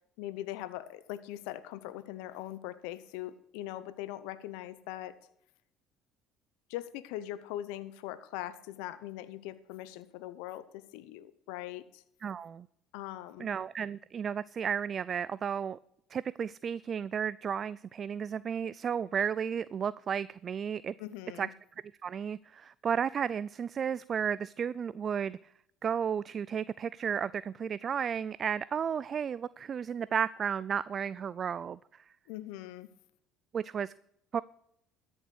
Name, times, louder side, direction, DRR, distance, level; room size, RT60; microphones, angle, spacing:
voice 1, 0.2-5.2 6.7-12.0 12.9-13.5 21.0-21.5 32.3-32.9, left 14 dB, 85° left, 14 dB, 0.7 m, -41 dB
voice 2, 12.2-12.7 13.4-15.8 16.1-20.9 21.4-21.5 22.0-25.4 25.8-31.8 33.5-33.9 34.3-34.4, right 7 dB, 40° right, 19 dB, 0.3 m, -33 dB
13.5 x 7.2 x 6.3 m, 0.74 s
supercardioid pair, 90°, 0 cm